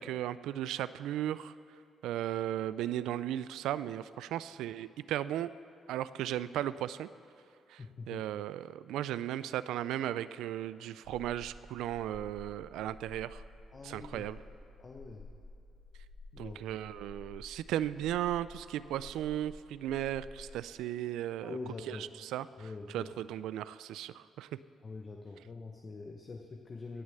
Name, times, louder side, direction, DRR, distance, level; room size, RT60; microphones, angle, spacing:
voice 1, 0.0-1.5 2.0-5.5 5.9-7.1 7.7-7.8 8.1-13.4 13.8-14.4 16.4-21.6 21.9-22.5 22.9-24.5, right 12 dB, 90° right, 16 dB, 0.3 m, -36 dB
voice 2, 7.8-8.2 13.7-14.3 14.8-15.3 16.3-16.6 21.4-22.1 22.6-23.1 24.8-27.0, left 3 dB, 35° left, 2 dB, 0.9 m, -44 dB
sound 1, 11.0-20.5, left 3 dB, 70° left, 1.9 m, -52 dB
17.0 x 6.5 x 6.7 m, 2.5 s
cardioid pair, 105°, 0 cm